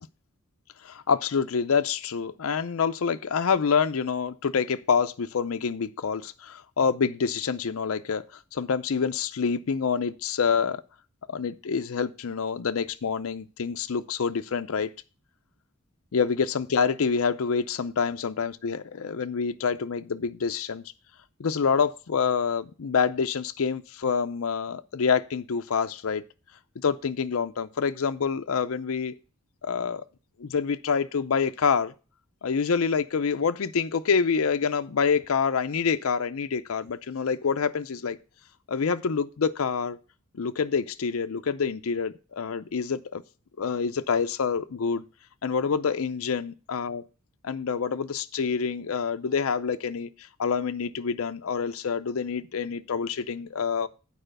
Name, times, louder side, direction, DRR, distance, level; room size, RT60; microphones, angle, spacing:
voice 1, 0.8-10.8 11.3-14.9 16.1-20.9 21.4-26.2 26.8-29.1 29.6-30.0 30.4-31.9 32.4-38.2 38.7-40.0 40.3-43.2 43.6-45.0 45.4-47.0 47.4-53.9, left 6 dB, 65° left, 9 dB, 0.5 m, -27 dB
9.0 x 4.9 x 6.4 m, 0.35 s
head